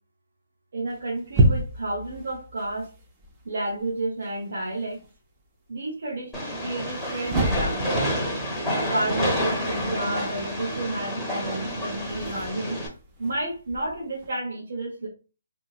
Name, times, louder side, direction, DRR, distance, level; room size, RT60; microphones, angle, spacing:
voice 1, 0.7-2.9 3.4-5.0 5.7-8.1 8.7-12.8 13.2-15.1, right 2 dB, 65° right, -4 dB, 0.9 m, -31 dB
sound 1, 0.9-5.2 6.8-14.3, right 1 dB, 20° right, 0.6 m, -31 dB
Train, 6.3-12.9, equal, 5° left, 0.9 m, -29 dB
2.8 x 2.6 x 2.4 m, 0.32 s
hypercardioid pair, 150°, 0 cm